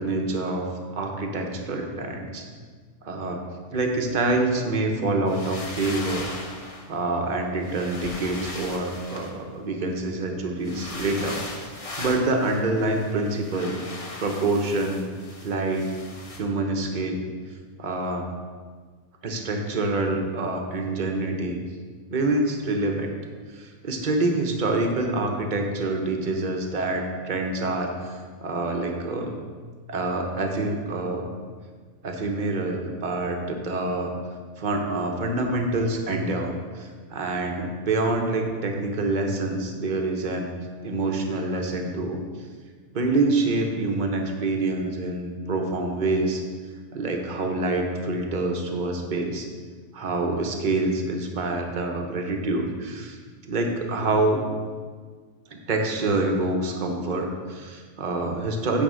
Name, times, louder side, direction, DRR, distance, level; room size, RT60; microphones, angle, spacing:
voice 1, 0.0-2.4 3.0-3.4 3.7-6.3 6.9-13.8 14.2-15.0 15.4-15.9 16.4-17.2 17.8-18.2 19.2-21.6 22.1-23.1 23.5-29.4 29.9-31.3 32.0-34.1 34.6-40.5 40.8-42.2 42.9-46.4 46.9-49.5 49.9-53.2 53.5-54.5 55.5-58.8, right 2 dB, 40° right, 2 dB, 0.9 m, -26 dB
sound 1, 5.3-6.9 7.6-9.8 10.6-16.4, left 2 dB, 30° left, 0.8 m, -38 dB
9.2 x 3.5 x 6.3 m, 1.6 s
omnidirectional pair, 1.4 m